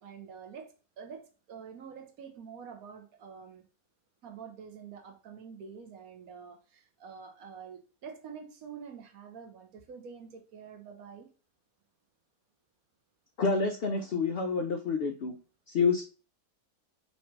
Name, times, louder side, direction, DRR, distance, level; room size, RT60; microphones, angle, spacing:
voice 1, 0.0-3.6 4.2-11.3, right 6 dB, 70° right, 1.3 m, -47 dB
voice 2, 13.4-15.3 15.7-16.0, left 4 dB, 85° left, 0.5 m, -28 dB
3.2 x 3.1 x 4.4 m
omnidirectional pair, 1.6 m